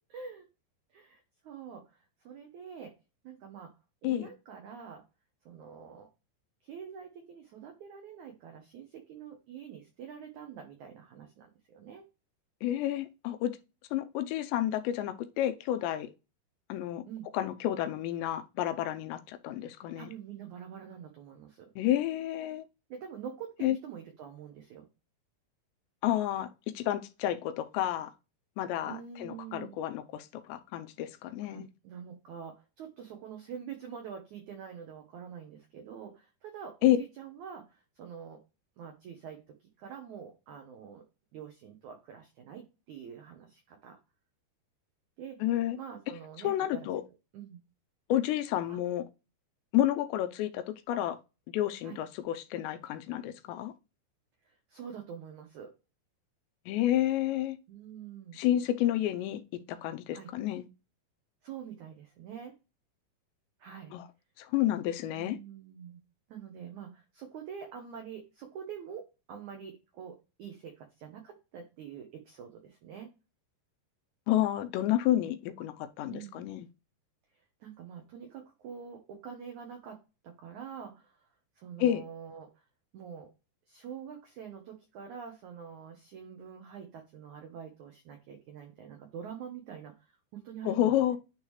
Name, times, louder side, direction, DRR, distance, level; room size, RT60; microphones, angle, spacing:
voice 1, 0.1-0.5 0.9-2.9 3.2-3.7 4.0-5.0 5.4-6.1 6.6-12.0 17.1-17.3 20.0-21.7 22.9-24.9 28.8-29.7 31.4-38.4 38.8-41.0 41.3-44.0 45.2-45.4 45.7-46.9 47.3-47.6 48.7-48.8 51.8-52.0 54.4-55.7 57.7-58.4 60.1-60.3 61.4-62.5 63.6-64.0 65.1-66.0 66.3-73.1 76.1-76.4 77.6-81.3 81.6-82.5 82.9-83.3 83.7-91.0, right 7 dB, 90° right, 1.6 m, -46 dB
voice 2, 12.6-13.6 13.9-16.1 16.7-17.0 17.3-20.1 21.8-22.7 23.6-23.8 26.0-26.5 26.8-28.1 28.6-31.7 36.8-37.0 45.4-45.8 46.4-47.0 48.1-49.0 49.7-51.2 51.5-53.7 56.7-57.6 58.3-59.4 59.7-60.6 63.9-64.1 64.4-65.4 74.3-76.7 81.8-82.0 90.6-91.2, left 12 dB, 85° left, 2.9 m, -30 dB
10.5 x 3.6 x 3.1 m
omnidirectional pair, 5.1 m